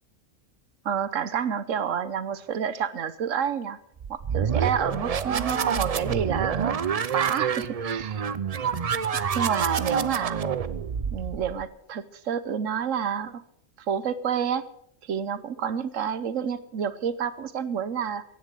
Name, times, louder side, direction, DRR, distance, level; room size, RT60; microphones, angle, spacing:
voice 1, 0.8-3.8 4.1-6.8 7.1-8.2 9.3-10.4 11.1-13.4 13.9-14.7 15.0-18.2, right 8 dB, 80° right, 15 dB, 1.3 m, -29 dB
sound 1, 4.0-11.7, right 7 dB, 45° right, 0.5 m, -28 dB
15.5 x 10.0 x 7.8 m, 0.76 s
omnidirectional pair, 1.3 m